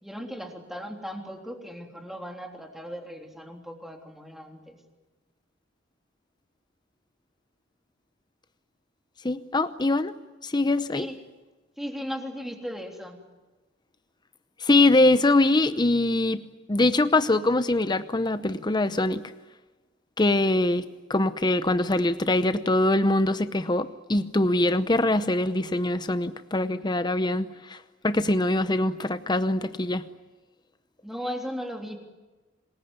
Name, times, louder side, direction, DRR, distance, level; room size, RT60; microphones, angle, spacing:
voice 1, 0.0-4.8 10.9-11.2 11.8-13.2 31.0-32.0, equal, ahead, 3 dB, 3.4 m, -37 dB
voice 2, 9.2-10.1 10.4-11.1 14.6-16.4 16.7-19.2 20.2-27.8 28.0-30.1, left 2 dB, 20° left, 12 dB, 0.8 m, -23 dB
27.0 x 20.5 x 9.6 m, 1.2 s
head